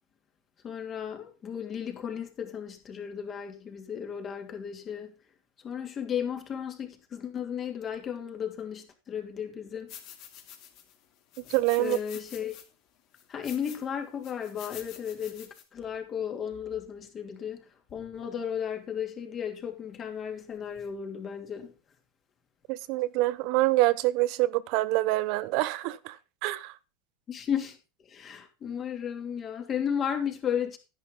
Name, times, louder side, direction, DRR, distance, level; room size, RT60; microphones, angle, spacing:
voice 1, 0.6-5.1 5.6-9.9 11.8-12.6 13.3-17.6 17.9-21.7 27.3-27.8 28.1-30.8, left 8 dB, 35° left, 2.9 m, -34 dB
sound 1, 9.9-11.0 11.3-12.6 13.1-13.8 14.2-15.6, left 10 dB, 55° left, 2.8 m, -48 dB
voice 2, 11.5-12.0 22.7-26.2 26.4-26.7, right 18 dB, 60° right, 0.6 m, -26 dB
10.5 x 10.5 x 3.9 m
supercardioid pair, 115°, 0 cm